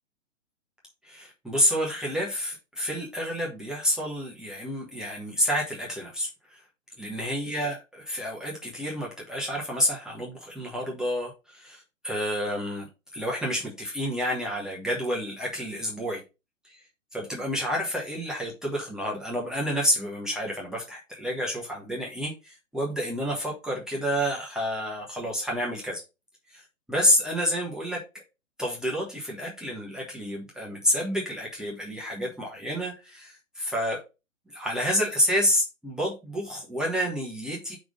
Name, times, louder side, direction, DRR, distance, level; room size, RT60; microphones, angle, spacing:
voice 1, 1.0-6.6 7.0-12.9 13.1-16.2 16.7-16.8 17.1-26.0 26.5-26.6 26.9-28.0 28.6-34.0 34.5-37.8, equal, ahead, 1.3 m, -29 dB
5.8 x 3.6 x 5.4 m
hypercardioid pair, 130°, 40 cm